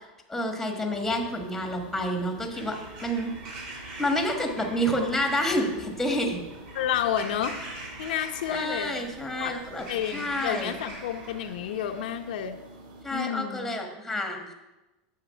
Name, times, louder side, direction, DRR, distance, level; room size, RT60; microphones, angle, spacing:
voice 1, 0.3-3.3 4.0-6.4 8.5-9.8 10.1-10.7 13.0-14.5, equal, 5° left, 3 dB, 1.5 m, -29 dB
sound 1, 0.9-13.0, right 2 dB, 85° right, 2.3 m, -47 dB
Bird vocalization bird call bird song / Crow, 2.4-12.3, right 2 dB, 50° right, 3.6 m, -44 dB
voice 2, 6.7-7.6 8.0-9.0 9.3-9.6 9.9-12.6 13.1-13.7, left 9 dB, 80° left, 5 dB, 0.9 m, -30 dB
9.6 x 7.3 x 5.7 m, 1.0 s
supercardioid pair, 155°, 5 cm